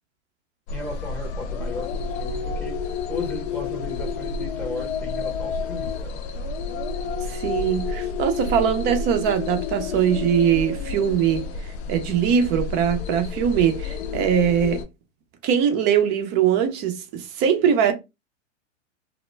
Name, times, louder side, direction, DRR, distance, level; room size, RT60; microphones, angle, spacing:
sound 1, 0.7-14.8, left 4 dB, 55° left, 0.6 m, -30 dB
voice 1, 0.7-2.8 3.1-6.3, left 2 dB, 5° left, 0.8 m, -36 dB
voice 2, 7.2-11.4 11.9-14.8 15.4-17.9, right 8 dB, 25° right, 0.5 m, -21 dB
2.2 x 2.0 x 3.1 m
hypercardioid pair, 110°, 39 cm